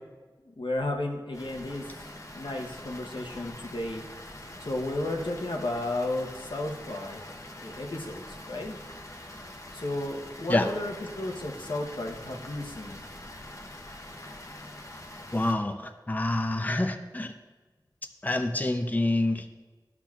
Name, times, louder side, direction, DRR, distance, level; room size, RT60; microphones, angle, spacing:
voice 1, 0.4-2.1 2.3-4.0 4.6-7.2 7.6-8.8 9.7-13.0, left 2 dB, 90° left, 1 dB, 0.9 m, -33 dB
Water, 1.3-15.5, left 1 dB, 40° left, 0.8 m, -44 dB
voice 2, 15.3-17.3 18.2-19.5, left 1 dB, 20° left, 7 dB, 0.4 m, -27 dB
12.0 x 5.9 x 2.4 m, 1.3 s
wide cardioid pair, 45°, 8 cm